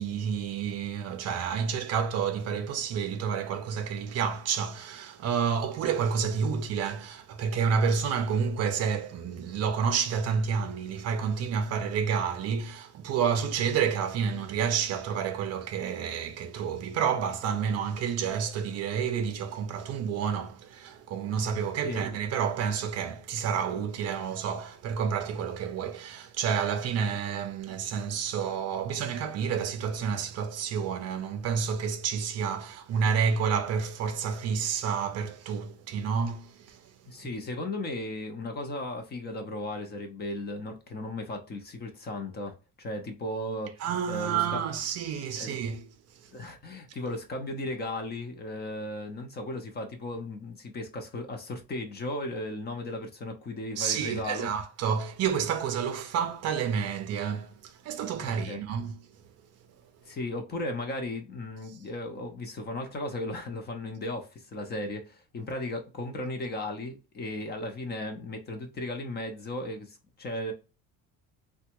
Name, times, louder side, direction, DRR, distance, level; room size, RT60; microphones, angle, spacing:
voice 1, 0.0-37.3 43.8-45.9 46.1-46.3 53.8-59.0, right 7 dB, 45° right, 0.5 m, -29 dB
voice 2, 37.1-44.6 45.4-45.6 46.3-54.5 58.2-58.7 60.0-70.5, left 1 dB, 30° left, 0.6 m, -36 dB
3.3 x 2.2 x 2.9 m
cardioid pair, 150°, 35 cm